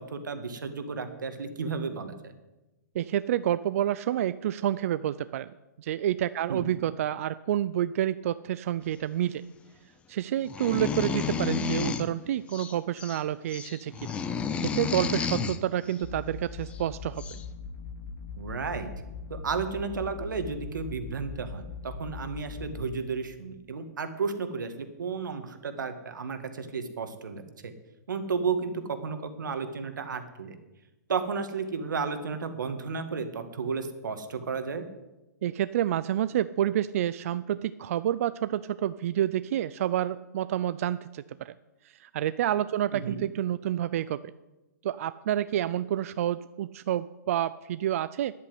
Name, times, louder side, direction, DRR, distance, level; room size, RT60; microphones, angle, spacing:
voice 1, 0.0-2.3 6.5-6.6 18.4-18.9 19.3-27.7 28.1-30.6 31.1-34.9 42.9-43.2, right 5 dB, 90° right, 8 dB, 2.0 m, -33 dB
voice 2, 2.9-5.5 5.8-9.4 10.1-14.2 14.6-17.4 35.4-41.5 42.0-44.2 44.8-48.3, right 11 dB, 50° right, 14 dB, 0.4 m, -29 dB
sound 1, 10.5-12.1 12.5-13.2 13.5-15.6 16.7-16.8 17.2-17.4, left 6 dB, 10° left, 0.6 m, -31 dB
sound 2, 16.0-22.9, left 5 dB, 80° left, 2.6 m, -41 dB
10.5 x 8.5 x 9.5 m, 1.0 s
hypercardioid pair, 155°, 10 cm